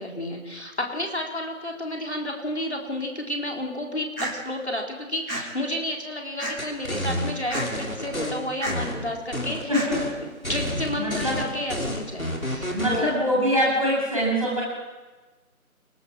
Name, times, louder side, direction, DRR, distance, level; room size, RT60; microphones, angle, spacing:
voice 1, 0.0-9.9 10.2-13.1, left 1 dB, 50° left, 1 dB, 4.1 m, -31 dB
sound 1, 4.2-4.3 5.3-5.4 6.4-6.7 7.5-7.6 8.6-8.8 9.7-9.9, right 1 dB, 90° right, 6.9 m, -30 dB
sound 2, 6.6-8.3 8.7-9.6 9.9-10.1 10.4-13.0, left 1 dB, 70° left, 5.7 m, -30 dB
voice 2, 11.0-11.4 12.7-14.6, equal, 25° right, -5 dB, 7.5 m, -23 dB
28.5 x 20.0 x 6.3 m, 1.2 s
figure-of-eight pair, 180°, 43 cm